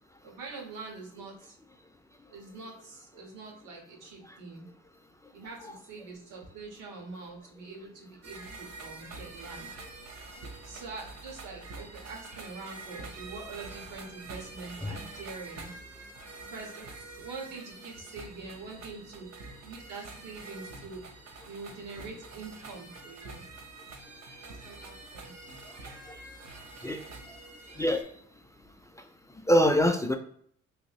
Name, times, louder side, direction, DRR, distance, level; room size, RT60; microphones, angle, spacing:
voice 1, 0.2-1.6 2.3-4.7 5.3-9.7 10.6-15.7 16.5-16.9 17.2-19.3 19.6-21.1 21.4-23.4 24.4-25.3, right 4 dB, 85° right, 0 dB, 1.4 m, -44 dB
sound 1, 8.2-28.0, right 3 dB, 60° right, 0.9 m, -46 dB
voice 2, 25.8-26.2 26.8-27.0 27.3-27.4 27.8-28.0 29.5-30.2, equal, 10° left, 6 dB, 0.3 m, -25 dB
3.5 x 2.5 x 3.0 m, 0.65 s
cardioid pair, 90°, 30 cm